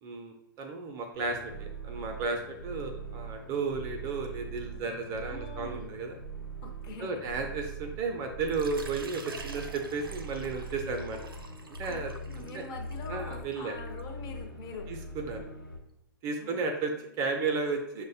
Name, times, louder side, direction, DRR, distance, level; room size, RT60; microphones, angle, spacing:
voice 1, 0.0-6.2 7.0-11.2 11.8-12.1 12.4-12.6 13.1-13.8 14.9-15.5 16.2-16.9 17.2-18.0, right 4 dB, 30° right, 4 dB, 0.4 m, -33 dB
sound 1, 1.1-15.8, right 3 dB, 85° left, 0.9 m, -42 dB
voice 2, 5.2-5.9 6.6-7.2 11.9-14.9 16.4-16.6 16.9-17.1, left 3 dB, 30° left, 1 dB, 0.6 m, -44 dB
Water / Liquid, 8.5-14.0, right 3 dB, 85° right, 0.4 m, -48 dB
6.2 x 2.1 x 2.7 m, 0.83 s
figure-of-eight pair, 110°, 12 cm